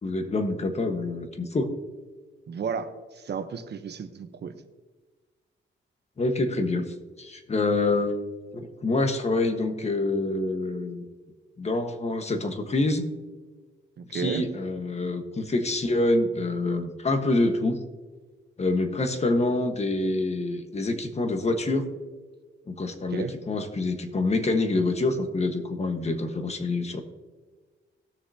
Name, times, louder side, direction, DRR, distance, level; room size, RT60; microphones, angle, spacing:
voice 1, 0.0-1.7 6.2-8.2 8.5-11.0 11.6-13.1 14.1-17.8 18.6-21.9 22.7-27.0, left 2 dB, 35° left, 6 dB, 1.3 m, -26 dB
voice 2, 2.5-4.5 14.0-14.4 23.1-23.3, right 6 dB, 55° right, 9 dB, 0.9 m, -33 dB
17.5 x 6.6 x 2.8 m, 1.3 s
cardioid pair, 110°, 20 cm